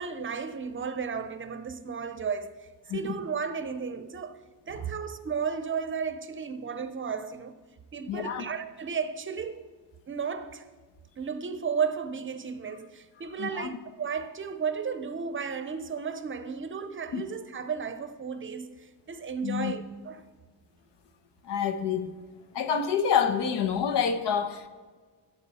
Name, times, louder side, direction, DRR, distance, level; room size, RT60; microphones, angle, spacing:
voice 1, 0.0-7.5 7.9-9.7 10.1-10.6 11.2-20.2, right 6 dB, 30° right, 0.6 m, -34 dB
voice 2, 2.9-3.2 4.8-4.9 8.1-8.4 13.4-13.7 17.1-17.2 19.4-19.7 21.4-22.1 22.5-24.7, left 7 dB, 80° left, 1.1 m, -27 dB
15.5 x 6.8 x 4.2 m
cardioid pair, 120°, 42 cm